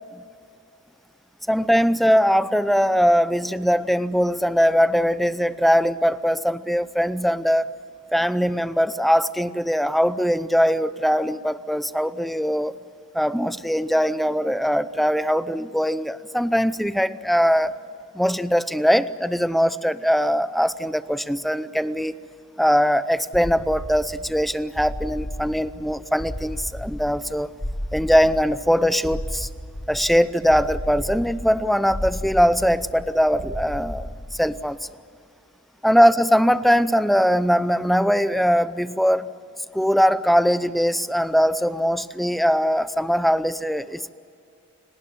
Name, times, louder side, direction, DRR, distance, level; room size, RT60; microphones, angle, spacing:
voice 1, 1.5-7.7 8.1-12.7 13.1-17.8 18.1-22.1 22.6-27.5 27.9-29.5 29.9-34.8 35.8-39.3 39.7-44.1, equal, ahead, 14 dB, 0.6 m, -21 dB
sound 1, 23.3-34.7, equal, 45° left, 1.7 m, -34 dB
30.0 x 18.5 x 8.6 m, 2.5 s
head